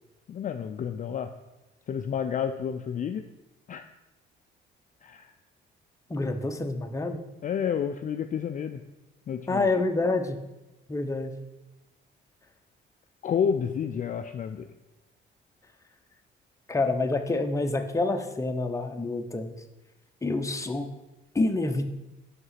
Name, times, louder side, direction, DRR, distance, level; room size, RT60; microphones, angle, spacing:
voice 1, 0.3-1.3 1.9-3.3 3.7-3.8 5.0-5.3 7.4-8.8 9.3-9.7 13.2-14.7, left 7 dB, 40° left, 7 dB, 0.4 m, -30 dB
voice 2, 6.1-7.2 9.5-10.4 10.9-11.3 16.7-19.5 20.2-20.9 21.3-21.9, left 2 dB, 15° left, 5 dB, 0.7 m, -27 dB
6.0 x 5.4 x 5.7 m, 1.0 s
cardioid pair, 90°, 20 cm